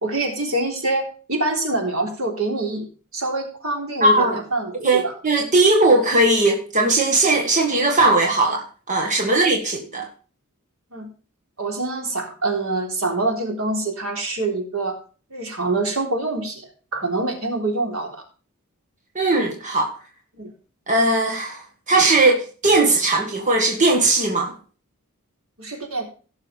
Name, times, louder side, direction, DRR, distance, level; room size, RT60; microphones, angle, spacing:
voice 1, 0.0-2.9 3.1-5.2 9.3-9.4 10.9-11.1 11.6-15.0 15.3-18.2 20.3-20.5 25.6-26.0, right 2 dB, 75° right, 3.6 m, -25 dB
voice 2, 4.0-4.3 4.8-10.1 19.2-19.9 20.9-21.6 21.9-24.5, right 2 dB, 35° right, 1.8 m, -18 dB
17.0 x 6.6 x 3.5 m
head